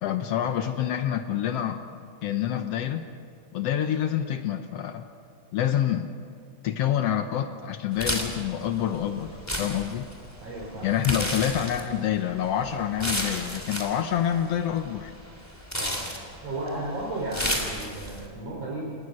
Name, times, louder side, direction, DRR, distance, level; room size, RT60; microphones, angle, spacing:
voice 1, 0.0-3.0 3.5-5.1 5.5-6.1 6.6-10.1 10.8-15.1, left 10 dB, 90° left, 7 dB, 1.4 m, -27 dB
sound 1, 7.9-18.3, equal, 5° left, 2.6 m, -33 dB
voice 2, 10.4-11.0 15.7-16.1 16.4-19.0, right 1 dB, 45° right, -3 dB, 4.4 m, -34 dB
27.5 x 20.5 x 6.4 m, 2.1 s
omnidirectional pair, 4.0 m